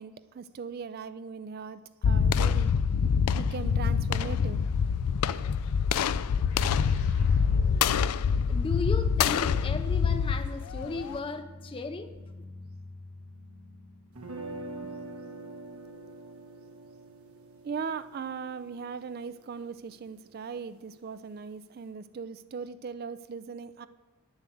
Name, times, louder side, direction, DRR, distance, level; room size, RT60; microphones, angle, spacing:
voice 1, 0.0-2.7 3.3-4.6 17.6-23.9, right 5 dB, 45° right, 13 dB, 0.3 m, -39 dB
sound 1, 2.0-11.2, left 6 dB, 90° left, 0.4 m, -25 dB
sound 2, 6.3-15.1, left 2 dB, 75° left, 2.0 m, -49 dB
voice 2, 8.5-12.1, left 2 dB, 25° left, 8 dB, 0.5 m, -35 dB
sound 3, 14.1-20.1, right 2 dB, 75° right, 1.5 m, -44 dB
9.2 x 7.2 x 7.6 m, 1.1 s
head